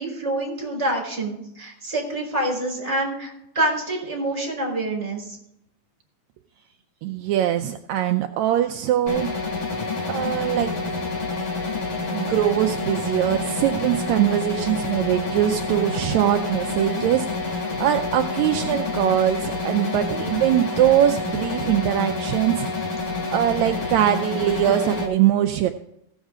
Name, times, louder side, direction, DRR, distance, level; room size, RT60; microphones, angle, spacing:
voice 1, 0.0-5.4, right 1 dB, 10° right, -1 dB, 4.0 m, -26 dB
voice 2, 7.0-9.3 10.1-10.7 12.1-22.7 23.3-25.7, right 12 dB, 80° right, 5 dB, 1.8 m, -22 dB
sound 1, 9.1-25.1, left 3 dB, 45° left, 1.7 m, -28 dB
16.5 x 7.3 x 3.6 m, 0.78 s
omnidirectional pair, 3.4 m